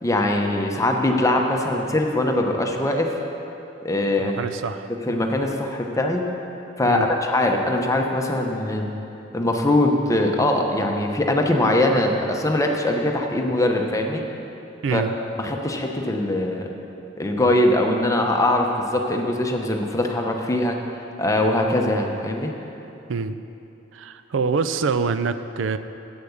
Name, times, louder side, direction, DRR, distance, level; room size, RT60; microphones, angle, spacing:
voice 1, 0.0-3.1 3.8-4.4 5.1-6.3 6.8-8.9 9.3-14.2 14.9-15.0 15.4-16.7 17.2-20.8 21.2-22.5, left 1 dB, 15° left, 2 dB, 0.8 m, -22 dB
voice 2, 4.2-4.9 6.8-7.1 14.8-15.1 23.1-23.4 23.9-25.8, right 5 dB, 85° right, 11 dB, 0.4 m, -25 dB
8.3 x 8.0 x 7.0 m, 2.9 s
head